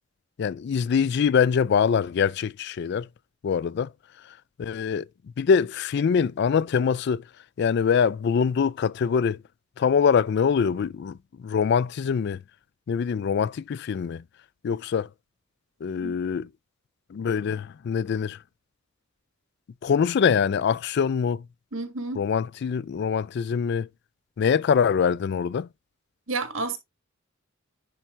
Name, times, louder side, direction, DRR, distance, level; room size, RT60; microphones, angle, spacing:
voice 1, 0.4-3.1 3.4-3.9 4.6-5.1 5.4-7.2 7.6-9.4 9.8-12.4 12.9-14.2 14.6-15.1 15.8-16.5 17.1-18.4 19.8-21.4 22.2-23.9 24.4-25.7, left 6 dB, 55° left, 0.3 m, -24 dB
voice 2, 21.7-22.3 26.3-26.8, right 3 dB, 80° right, 1.7 m, -30 dB
10.0 x 4.4 x 2.5 m
head